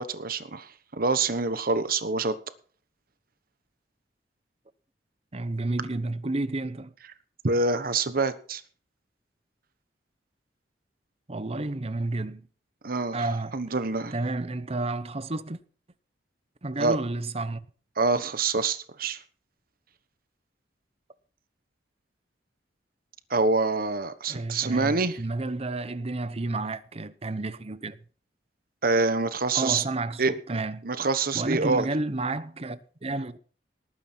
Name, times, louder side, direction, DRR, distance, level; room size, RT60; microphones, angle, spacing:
voice 1, 0.0-2.3 7.4-8.6 12.8-13.3 13.5-14.1 16.8-17.0 18.0-19.2 23.3-25.2 28.8-29.8 30.2-31.9, right 3 dB, 55° right, 1.2 m, -26 dB
voice 2, 5.3-6.9 11.3-12.4 13.1-13.6 14.1-15.6 16.6-17.6 24.3-28.0 29.5-30.9 31.3-33.4, right 2 dB, 35° right, 0.9 m, -31 dB
19.0 x 9.4 x 4.5 m
head